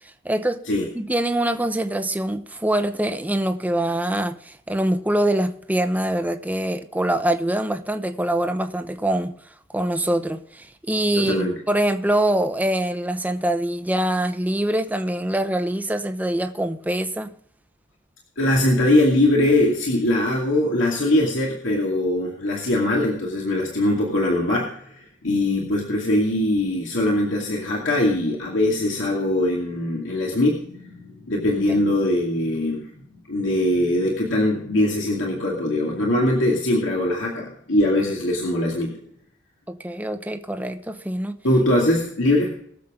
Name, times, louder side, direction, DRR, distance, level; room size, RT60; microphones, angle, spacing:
voice 1, 0.2-0.6 0.9-9.3 9.7-17.3 31.7-31.8 39.7-41.4, right 1 dB, 10° right, 0.9 m, -24 dB
voice 2, 11.2-11.5 18.4-39.0 41.4-42.5, left 1 dB, 75° left, 2.5 m, -22 dB
22.5 x 7.5 x 3.8 m
head